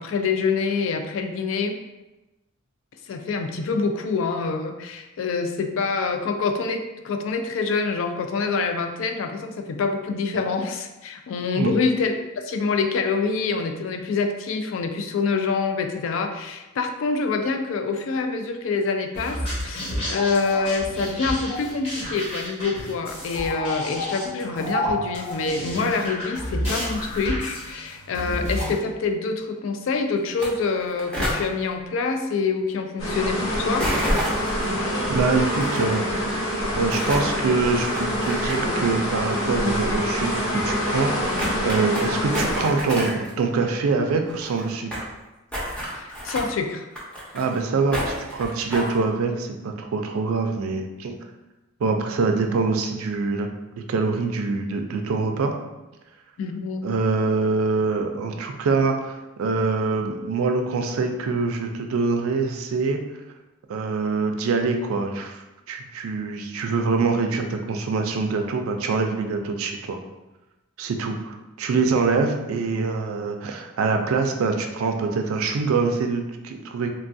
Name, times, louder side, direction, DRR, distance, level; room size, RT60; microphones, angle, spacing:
voice 1, 0.0-1.8 3.1-33.9 45.9-46.9 56.4-56.9, left 4 dB, 65° left, 6 dB, 0.3 m, -26 dB
sound 1, 19.1-28.8, equal, 30° left, 1.0 m, -30 dB
sound 2, 30.3-30.5 30.7-31.4 33.8-34.6 35.6-35.8 36.7-37.3 37.8-38.8 39.1-39.2 40.0-40.1 40.6-40.7 40.9-41.0 41.4-42.0 42.3-43.3 43.6-43.7 43.9-44.0 44.1-45.1 45.5-46.4 46.9-47.6 47.9-48.9, equal, 5° left, 0.6 m, -29 dB
sound 3, 33.0-42.6, equal, 90° left, 0.9 m, -25 dB
voice 2, 35.1-36.1 36.8-45.1 47.3-51.2 51.8-53.5 53.8-55.5 56.8-63.0 63.7-65.4 65.7-70.0 70.8-76.9, right 4 dB, 90° right, 5 dB, 0.4 m, -24 dB
3.3 x 2.2 x 2.5 m, 1.0 s
head